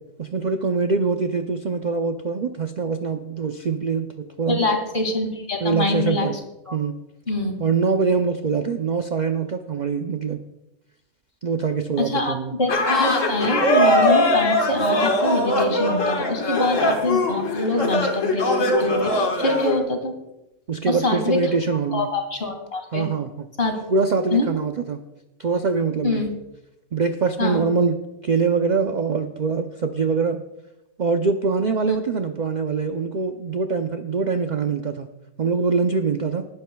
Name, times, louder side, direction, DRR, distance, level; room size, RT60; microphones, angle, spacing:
voice 1, 0.2-4.7 5.6-6.3 6.7-6.9 7.6-10.4 11.4-12.5 20.7-22.1 22.9-23.5 23.9-25.0 25.4-26.3 26.9-30.4 31.0-35.1 35.4-36.5, right 5 dB, 55° right, 6 dB, 0.5 m, -23 dB
voice 2, 4.5-6.3 6.7-6.8 7.3-7.6 12.0-20.1 20.9-21.4 21.9-23.0 23.6-23.8 24.3-24.5 26.0-26.3 27.4-27.6 31.9-32.0, left 2 dB, 40° left, 3 dB, 2.4 m, -25 dB
sound 1, 12.7-19.8, left 1 dB, 55° left, 1.9 m, -21 dB
19.0 x 11.5 x 2.3 m, 0.93 s
omnidirectional pair, 1.6 m